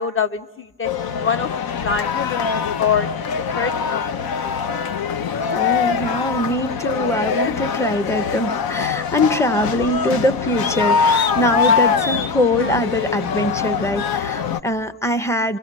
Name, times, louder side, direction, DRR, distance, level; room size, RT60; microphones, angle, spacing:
voice 1, 0.0-4.0 4.4-4.6 7.4-7.5 11.7-11.8 12.6-12.8, left 6 dB, 35° left, 10 dB, 1.1 m, -25 dB
sound 1, 0.8-14.6, left 6 dB, 70° left, 0.8 m, -23 dB
voice 2, 5.5-15.6, left 1 dB, 10° left, 12 dB, 0.9 m, -22 dB
25.5 x 25.0 x 7.5 m, 1.2 s
cardioid pair, 105°, 37 cm